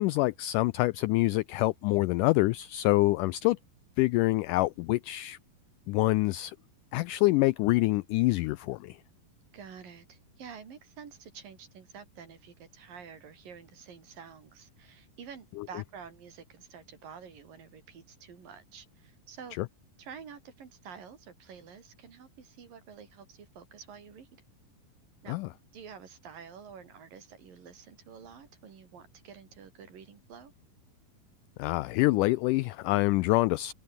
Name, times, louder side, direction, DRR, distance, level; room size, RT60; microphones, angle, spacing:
voice 1, 0.0-3.6 4.0-5.4 5.9-6.6 6.9-9.0 15.6-15.7 19.6-19.7 25.3-25.5 31.6-33.7, left 20 dB, 85° left, 1.8 m, -26 dB
voice 2, 9.5-19.6 20.0-24.4 25.2-25.4 25.7-30.5, right 7 dB, 70° right, 5.1 m, -49 dB
omnidirectional pair, 4.2 m